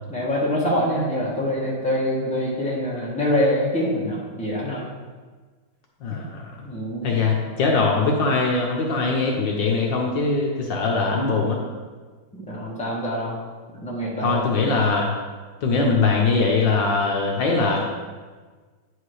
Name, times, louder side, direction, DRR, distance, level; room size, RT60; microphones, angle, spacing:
voice 1, 0.1-4.8 6.6-7.2 12.3-13.4 13.7-14.4, equal, 5° left, -6 dB, 1.6 m, -25 dB
voice 2, 6.0-6.5 7.0-11.6 14.2-15.1 15.6-17.8, left 4 dB, 65° left, -1 dB, 1.5 m, -21 dB
9.2 x 5.0 x 4.8 m, 1.4 s
omnidirectional pair, 2.2 m